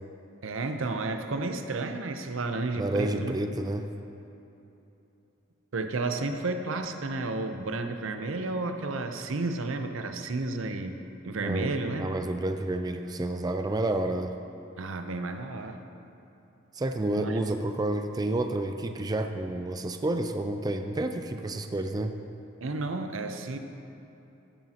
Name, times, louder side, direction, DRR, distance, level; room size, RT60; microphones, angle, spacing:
voice 1, 0.4-3.4 5.7-11.0 11.2-12.1 14.8-15.8 17.2-17.4 22.6-23.6, right 3 dB, 85° right, 6 dB, 0.7 m, -32 dB
voice 2, 2.8-3.9 11.4-11.7 12.0-14.3 16.7-22.1, right 2 dB, 20° right, 6 dB, 0.4 m, -30 dB
15.5 x 8.9 x 2.9 m, 2.9 s
head